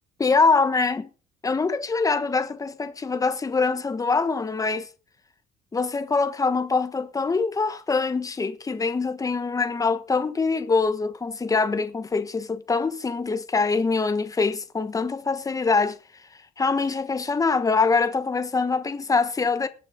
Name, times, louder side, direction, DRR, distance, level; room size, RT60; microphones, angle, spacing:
voice 1, 0.2-1.1 1.4-4.9 5.7-16.0 16.6-19.7, left 4 dB, 20° left, 1.3 m, -24 dB
19.5 x 6.7 x 5.2 m
cardioid pair, 110°, 17 cm